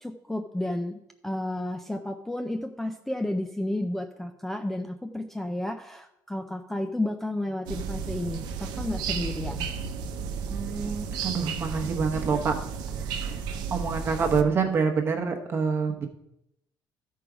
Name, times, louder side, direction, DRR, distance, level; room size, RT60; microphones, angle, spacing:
voice 1, 0.0-9.7, left 1 dB, 5° left, 5 dB, 0.4 m, -32 dB
sound 1, 7.7-14.4, right 6 dB, 80° right, 0.8 m, -33 dB
voice 2, 10.5-12.6 13.0-13.3 13.7-16.1, right 5 dB, 30° right, 4 dB, 1.0 m, -27 dB
13.0 x 4.7 x 4.9 m, 0.84 s
cardioid pair, 160°, 7 cm